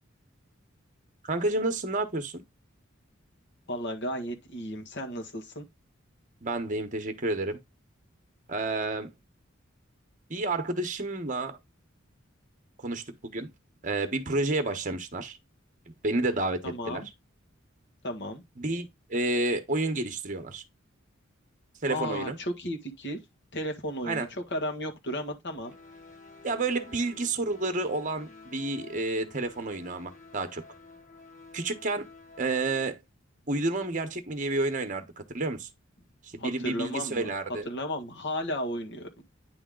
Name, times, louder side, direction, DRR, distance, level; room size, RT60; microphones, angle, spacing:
voice 1, 1.2-2.4 6.4-7.6 8.5-9.1 10.3-11.6 12.8-13.5 13.8-15.4 15.9-16.6 16.9-17.0 18.6-20.6 21.8-22.4 24.0-24.3 26.4-30.6 31.5-32.1 32.4-33.0 33.5-35.7 36.2-37.7, right 2 dB, 40° right, 1.1 m, -30 dB
voice 2, 3.7-5.7 16.6-17.1 18.0-18.4 21.9-23.2 23.5-25.8 36.4-37.3 37.7-39.1, equal, 60° left, 1.7 m, -34 dB
sound 1, 25.5-32.9, left 3 dB, 40° left, 1.9 m, -51 dB
9.5 x 3.6 x 3.8 m
head